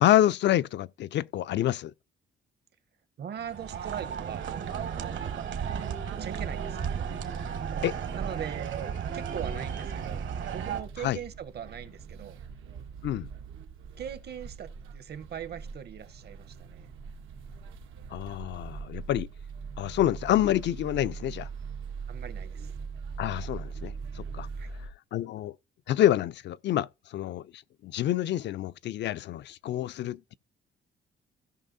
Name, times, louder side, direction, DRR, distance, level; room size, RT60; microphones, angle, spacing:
voice 1, 0.0-1.9 7.8-8.0 11.0-11.2 13.0-13.3 18.1-19.3 19.8-21.5 23.2-24.5 25.1-25.5 25.9-30.3, left 12 dB, 65° left, 0.4 m, -27 dB
voice 2, 3.2-4.5 6.2-7.0 8.1-8.8 9.1-12.4 14.0-16.9 22.1-22.7 24.6-24.7, right 9 dB, 55° right, 0.9 m, -40 dB
sound 1, 3.4-10.8, right 7 dB, 70° right, 1.4 m, -34 dB
sound 2, 6.3-24.9, right 5 dB, 90° right, 1.0 m, -42 dB
16.5 x 5.5 x 2.6 m
cardioid pair, 90°, 20 cm